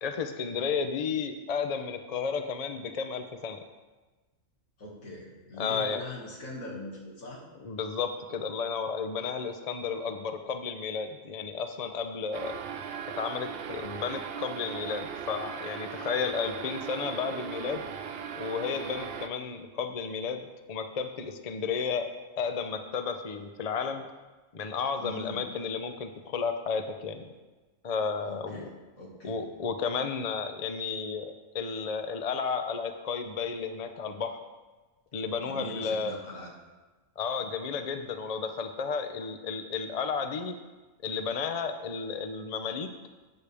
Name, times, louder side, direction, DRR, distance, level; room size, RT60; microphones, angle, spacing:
voice 1, 0.0-3.6 5.6-6.0 7.6-12.6 13.2-17.9 18.3-22.1 22.4-24.1 24.5-27.3 27.8-28.7 29.2-34.4 35.1-36.2 37.2-40.6 41.0-42.9, left 5 dB, 40° left, 7 dB, 0.6 m, -33 dB
voice 2, 4.8-7.4 16.0-16.1 25.0-25.4 28.2-28.7 29.0-29.4 35.4-36.5, left 1 dB, 80° left, -3 dB, 2.5 m, -41 dB
sound 1, 12.3-19.3, right 7 dB, 60° right, 0.7 m, -38 dB
12.0 x 8.9 x 3.4 m, 1.2 s
omnidirectional pair, 1.4 m